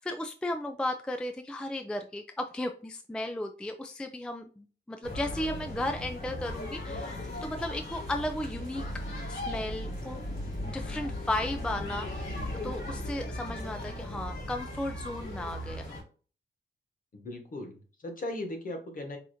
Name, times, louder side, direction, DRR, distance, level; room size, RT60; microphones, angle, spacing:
voice 1, 0.0-8.8 9.3-10.2 10.6-12.4 12.6-16.0, left 1 dB, 5° left, 5 dB, 0.3 m, -35 dB
sound 1, 5.0-16.0, left 1 dB, 85° left, 2.0 m, -37 dB
voice 2, 17.1-19.2, left 1 dB, 45° left, 3 dB, 1.3 m, -38 dB
4.8 x 2.8 x 2.6 m, 0.39 s
wide cardioid pair, 130°, 19 cm